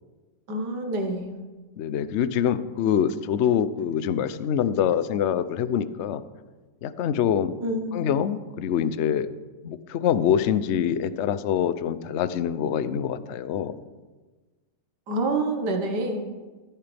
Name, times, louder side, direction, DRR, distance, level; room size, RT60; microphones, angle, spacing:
voice 1, 0.5-1.3 7.6-8.1 15.1-16.3, right 2 dB, 75° right, 3 dB, 2.1 m, -27 dB
voice 2, 1.8-6.2 6.8-7.5 7.9-9.3 9.6-13.8, left 9 dB, 65° left, 13 dB, 0.7 m, -25 dB
14.5 x 13.5 x 3.5 m, 1.3 s
omnidirectional pair, 1.8 m